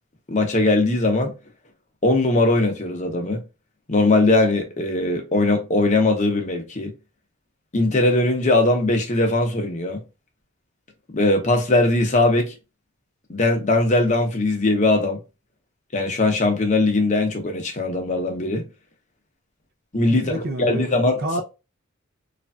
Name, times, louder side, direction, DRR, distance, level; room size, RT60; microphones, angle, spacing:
voice 1, 0.3-1.3 2.0-3.4 3.9-6.9 7.7-10.0 11.1-12.5 13.3-15.2 15.9-18.6 19.9-21.4, left 2 dB, 35° left, 0.7 m, -20 dB
voice 2, 20.1-21.4, right 1 dB, 45° right, 0.4 m, -29 dB
3.1 x 2.5 x 2.2 m
head